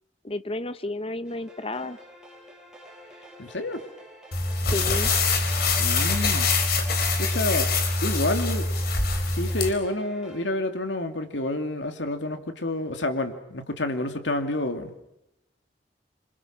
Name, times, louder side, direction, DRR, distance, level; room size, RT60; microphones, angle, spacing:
voice 1, 0.2-2.0 4.5-5.1, left 2 dB, 30° left, 13 dB, 1.1 m, -32 dB
sound 1, 1.2-10.4, equal, 5° right, 7.7 m, -48 dB
voice 2, 3.4-3.8 5.8-6.5 7.2-7.7 8.0-8.7 9.3-14.9, left 2 dB, 90° left, 7 dB, 2.6 m, -29 dB
sound 2, 4.3-9.7, left 3 dB, 60° left, 3.8 m, -24 dB
27.0 x 27.0 x 6.1 m, 0.83 s
head